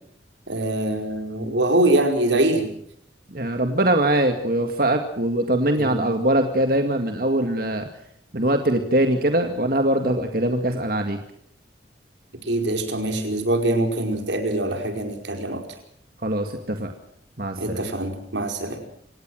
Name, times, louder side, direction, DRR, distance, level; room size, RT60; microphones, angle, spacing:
voice 1, 0.5-2.7 5.7-6.0 12.5-15.6 17.6-18.8, right 1 dB, 85° right, 5 dB, 5.0 m, -23 dB
voice 2, 3.3-7.9 8.3-11.2 16.2-16.9 17.4-17.8, right 1 dB, 50° right, 5 dB, 2.1 m, -22 dB
27.0 x 18.0 x 6.4 m, 0.69 s
head